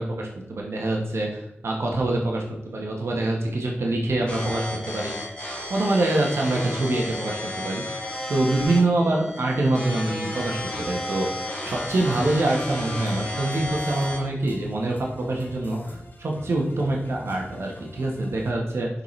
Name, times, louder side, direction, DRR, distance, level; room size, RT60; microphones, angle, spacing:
voice 1, 0.0-5.1 5.7-18.9, right 2 dB, 80° right, -1 dB, 1.2 m, -25 dB
sound 1, 4.3-14.3, left 1 dB, 25° left, 1.7 m, -33 dB
sound 2, 11.6-18.5, left 1 dB, 50° left, 1.1 m, -44 dB
6.7 x 5.6 x 3.2 m, 0.82 s
wide cardioid pair, 95°, 4 cm